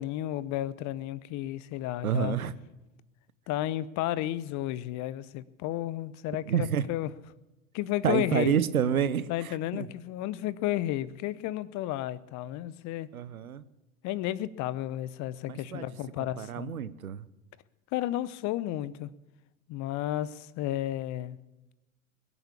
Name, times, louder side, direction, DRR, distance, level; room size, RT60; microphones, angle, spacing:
voice 1, 0.0-2.4 3.5-7.1 7.7-8.6 9.3-13.1 14.0-16.7 17.9-19.1 19.7-21.4, left 14 dB, 45° left, 19 dB, 0.7 m, -32 dB
voice 2, 2.0-2.5 6.5-6.9 8.0-9.9 13.1-13.6 15.5-15.8 16.2-17.3, right 8 dB, 90° right, 16 dB, 0.8 m, -29 dB
21.0 x 7.1 x 8.4 m, 1.0 s
hypercardioid pair, 80°, 41 cm